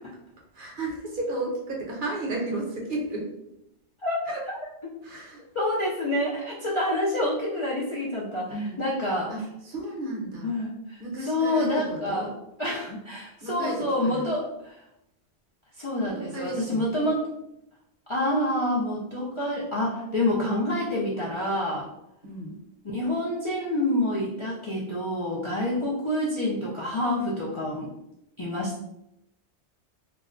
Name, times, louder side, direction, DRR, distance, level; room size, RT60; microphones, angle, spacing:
voice 1, 0.5-3.3 4.3-4.4 5.0-5.4 8.5-8.8 9.3-10.5 11.0-12.3 13.4-14.2 16.2-16.8 22.2-22.6, right 2 dB, 55° right, -2 dB, 0.9 m, -33 dB
voice 2, 4.0-4.3 5.5-9.3 10.4-12.3 12.6-14.9 15.7-17.3 18.1-21.9 22.8-27.9 28.4-28.8, left 1 dB, 40° left, -7 dB, 0.4 m, -27 dB
2.3 x 2.1 x 3.7 m, 0.84 s
omnidirectional pair, 1.1 m